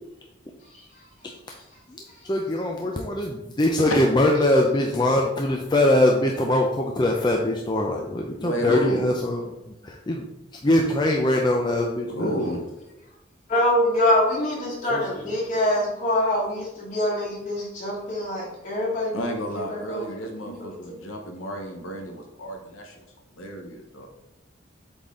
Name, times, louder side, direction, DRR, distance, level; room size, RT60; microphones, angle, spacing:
voice 1, 1.9-10.2 10.5-12.3 14.9-15.3 15.8-15.9, left 1 dB, 20° left, 0 dB, 0.5 m, -23 dB
voice 2, 8.4-9.1 12.1-12.6 19.1-23.0 23.4-24.1, equal, 85° left, 2 dB, 1.0 m, -31 dB
voice 3, 13.5-19.3 19.7-20.1 20.5-20.6, left 1 dB, 40° left, -5 dB, 2.4 m, -24 dB
7.8 x 4.0 x 3.7 m, 0.93 s
head